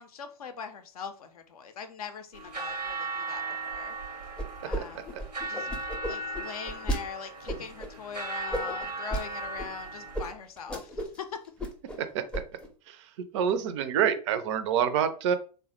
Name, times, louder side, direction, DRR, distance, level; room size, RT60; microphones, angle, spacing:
voice 1, 0.0-4.0 4.6-5.1 5.5-5.7 6.1-11.4, left 6 dB, 65° left, 0.5 m, -41 dB
sound 1, 2.3-10.3, right 3 dB, 85° right, 0.7 m, -37 dB
sound 2, 4.4-4.8 5.1-7.0 7.5-7.9 8.5-9.2 9.6-9.7 10.1-10.2 10.6-11.2 11.4-12.0 12.3-12.7, right 1 dB, 5° left, 0.5 m, -33 dB
voice 2, 12.9-15.4, right 8 dB, 45° right, 0.4 m, -27 dB
3.2 x 2.1 x 3.0 m
figure-of-eight pair, 85°, 21 cm